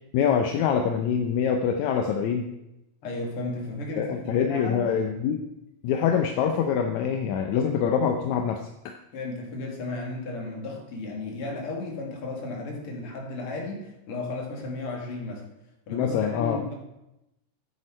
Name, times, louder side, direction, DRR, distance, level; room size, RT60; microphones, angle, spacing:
voice 1, 0.1-2.5 4.0-5.4 5.8-9.0 15.9-16.6, left 7 dB, 80° left, 5 dB, 1.7 m, -25 dB
voice 2, 3.0-4.9 9.1-15.4 15.9-16.7, left 2 dB, 45° left, 0 dB, 2.3 m, -34 dB
9.4 x 7.9 x 4.5 m, 0.91 s
omnidirectional pair, 3.8 m